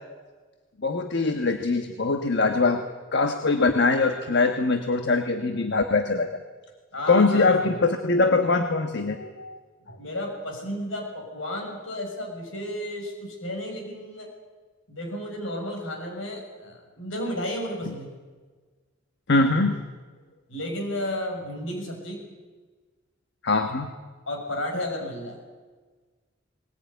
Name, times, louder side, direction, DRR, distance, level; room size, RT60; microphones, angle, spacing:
voice 1, 0.8-2.8 3.1-6.4 7.1-9.6 9.9-10.0 19.3-19.8 23.4-23.9, left 3 dB, 60° left, 6 dB, 1.2 m, -22 dB
voice 2, 6.9-7.7 9.8-14.3 14.9-18.2 20.5-22.2 24.3-25.4, left 1 dB, 75° left, 1 dB, 6.9 m, -33 dB
20.0 x 19.5 x 9.4 m, 1.4 s
head